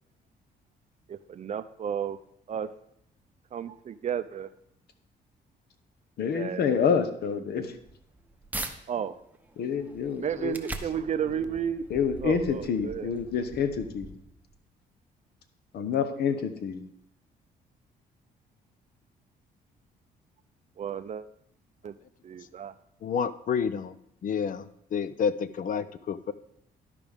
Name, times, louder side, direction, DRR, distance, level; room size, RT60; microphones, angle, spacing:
voice 1, 1.1-2.2 2.5-2.7 3.5-4.5 6.3-6.6 8.9-9.2 10.2-11.9 12.2-13.2 20.8-21.2 21.8-22.0 22.2-22.7, right 8 dB, 45° right, 13 dB, 0.5 m, -32 dB
voice 2, 6.2-7.8 9.6-10.6 11.3-11.4 11.9-14.1 15.7-16.8, left 6 dB, 70° left, 9 dB, 0.9 m, -28 dB
sound 1, 7.7-8.7 9.3-14.5, right 2 dB, 10° right, 0.8 m, -42 dB
voice 3, 23.0-23.9 24.2-26.3, left 6 dB, 50° left, 14 dB, 0.5 m, -29 dB
12.5 x 5.0 x 3.5 m, 0.74 s
cardioid pair, 85°, 17 cm